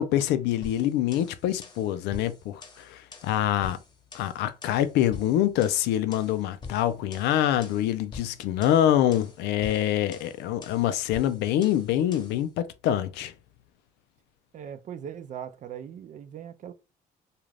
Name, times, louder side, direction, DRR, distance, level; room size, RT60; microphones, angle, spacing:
voice 1, 0.0-3.8 4.1-13.3, left 11 dB, 85° left, 0.4 m, -25 dB
sound 1, 0.6-12.4, left 4 dB, 25° left, 0.9 m, -45 dB
voice 2, 14.5-16.7, right 9 dB, 50° right, 0.5 m, -39 dB
2.5 x 2.4 x 3.2 m
cardioid pair, 110°, 17 cm